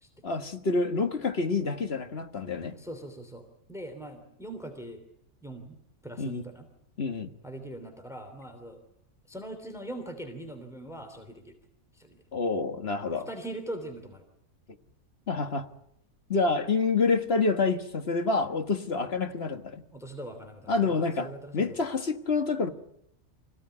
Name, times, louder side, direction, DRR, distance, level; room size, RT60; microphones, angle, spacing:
voice 1, 0.2-2.8 6.2-6.4 7.0-7.3 12.3-13.3 15.3-15.7 16.3-19.8 20.7-22.7, left 4 dB, 45° left, 1.7 m, -27 dB
voice 2, 2.7-5.0 5.4-6.7 7.4-8.8 9.3-11.6 11.9-12.2 13.1-14.2 19.9-21.8, right 1 dB, ahead, 3.0 m, -41 dB
25.5 x 17.0 x 9.6 m
omnidirectional pair, 1.6 m